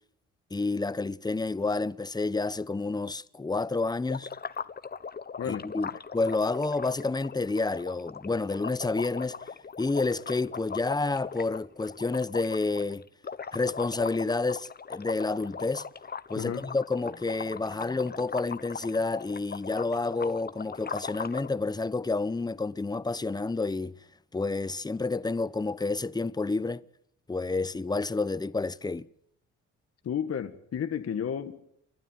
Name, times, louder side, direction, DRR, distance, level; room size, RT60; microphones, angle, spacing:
voice 1, 0.5-4.3 5.5-9.4 9.8-13.0 13.5-15.9 16.3-24.0 24.3-26.8 27.3-29.1, left 3 dB, 15° left, 0.9 m, -29 dB
sound 1, 4.1-21.5, left 6 dB, 30° left, 1.2 m, -39 dB
voice 2, 5.4-5.7 16.4-16.6 30.0-31.6, left 8 dB, 55° left, 1.7 m, -32 dB
30.0 x 12.0 x 9.2 m
cardioid pair, 90°, 30 cm